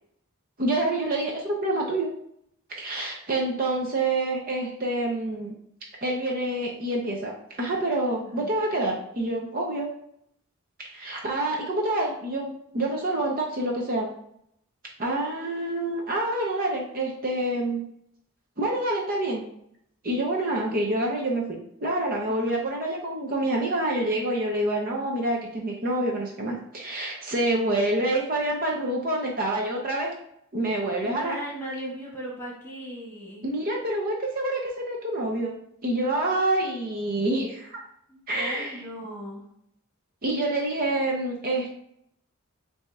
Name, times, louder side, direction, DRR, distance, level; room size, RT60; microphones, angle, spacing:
voice 1, 0.6-2.1 2.8-5.5 6.0-7.3 7.6-9.9 10.8-14.1 15.0-17.8 18.6-19.4 20.0-30.1 30.5-31.4 33.4-35.5 35.8-37.8 38.3-38.8 40.2-41.7, right 1 dB, 45° right, -1 dB, 0.7 m, -27 dB
voice 2, 22.2-22.6 31.0-33.4 38.1-39.4, equal, 10° left, -5 dB, 1.6 m, -38 dB
7.7 x 2.8 x 2.4 m, 0.72 s
head